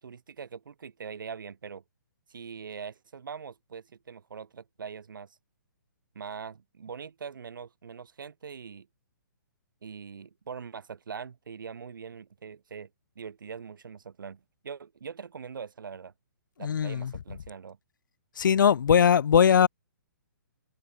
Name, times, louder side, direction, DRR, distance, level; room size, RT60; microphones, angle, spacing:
voice 1, 0.0-1.8 2.3-5.4 6.2-8.9 9.8-12.9 13.2-16.1 16.6-17.8, right 6 dB, 75° right, 3.7 m, -42 dB
voice 2, 16.6-17.1 18.4-19.7, left 7 dB, 70° left, 0.6 m, -20 dB
hypercardioid pair, 170°, 11 cm